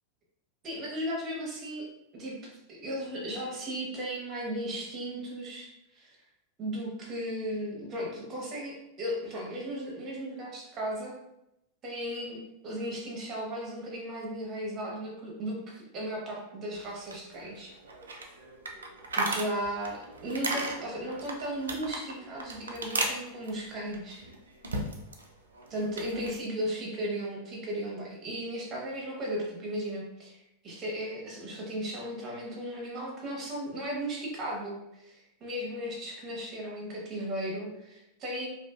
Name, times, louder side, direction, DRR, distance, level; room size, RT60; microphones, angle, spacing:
voice 1, 0.6-1.9 2.1-2.4 2.7-5.7 5.9-6.1 6.6-11.1 11.8-17.7 19.1-24.2 25.7-30.4 30.6-38.5, equal, 35° right, -2 dB, 1.1 m, -36 dB
sound 1, 16.7-25.3 25.5-26.4, right 2 dB, 85° right, 0.4 m, -36 dB
2.6 x 2.5 x 2.3 m, 0.86 s
hypercardioid pair, 95°, 0 cm